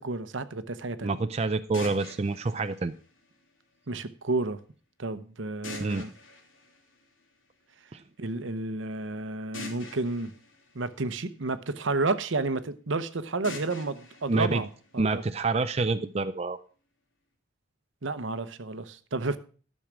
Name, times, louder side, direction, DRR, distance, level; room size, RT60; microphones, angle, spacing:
voice 1, 0.0-1.1 3.9-4.6 5.0-6.1 8.2-10.3 10.7-14.7 14.9-15.2 18.0-19.4, right 3 dB, 75° right, 13 dB, 0.9 m, -31 dB
voice 2, 1.0-2.9 5.8-6.1 7.9-8.0 14.3-14.6 15.0-16.6, right 3 dB, 30° right, 9 dB, 0.5 m, -27 dB
sound 1, 1.7-3.8 5.6-7.6 9.5-11.7 13.4-15.5, left 2 dB, 85° left, 3.0 m, -46 dB
12.0 x 6.5 x 6.1 m, 0.40 s
head